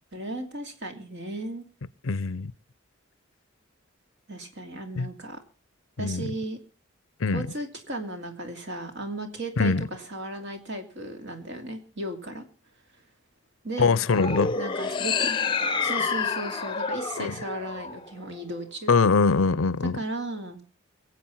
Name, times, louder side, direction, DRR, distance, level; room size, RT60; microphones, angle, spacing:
voice 1, 0.1-1.7 4.3-5.4 6.0-6.6 7.3-12.4 13.6-14.0 14.5-15.3 15.8-18.9 19.9-20.6, right 1 dB, 55° right, 2.9 m, -35 dB
voice 2, 2.0-2.5 5.0-5.1 6.0-6.3 7.2-7.5 9.6-9.9 13.8-14.5 17.2-17.4 18.9-20.0, left 4 dB, 80° left, 0.6 m, -23 dB
sound 1, 14.1-18.4, left 5 dB, 25° left, 0.7 m, -28 dB
23.5 x 8.1 x 5.6 m
head